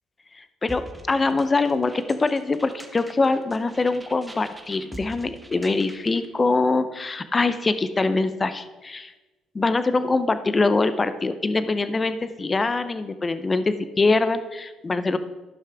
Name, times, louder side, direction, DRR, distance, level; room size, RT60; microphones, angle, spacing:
voice 1, 0.4-9.1 9.5-15.2, left 3 dB, 30° left, 12 dB, 0.6 m, -23 dB
sound 1, 0.7-6.3, right 1 dB, 15° right, 1.1 m, -45 dB
12.5 x 5.7 x 4.7 m, 1.1 s
supercardioid pair, 75°, 0 cm